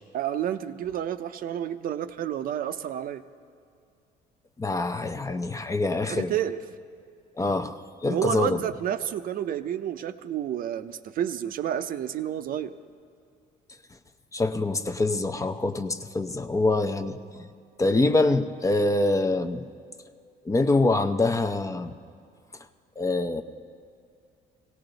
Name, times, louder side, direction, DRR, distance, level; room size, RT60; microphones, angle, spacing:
voice 1, 0.1-3.2 6.0-6.6 8.1-12.7, right 10 dB, 60° right, 10 dB, 0.6 m, -30 dB
voice 2, 4.6-6.3 7.4-7.8 8.0-8.6 14.3-17.2 17.8-19.6 20.5-21.9 23.0-23.4, left 2 dB, 20° left, 8 dB, 0.6 m, -25 dB
17.5 x 17.0 x 3.9 m, 2.4 s
cardioid pair, 110°, 17 cm